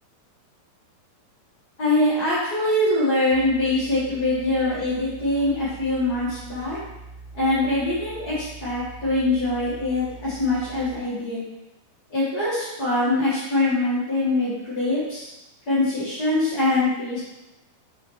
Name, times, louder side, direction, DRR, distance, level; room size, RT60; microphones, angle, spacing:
voice 1, 1.8-6.8 7.3-11.5 12.1-15.3 15.7-17.2, left 2 dB, 35° left, -10 dB, 1.5 m, -23 dB
sound 1, 3.3-11.0, right 3 dB, 75° left, 1.6 m, -43 dB
6.8 x 5.0 x 3.2 m, 0.97 s
omnidirectional pair, 4.3 m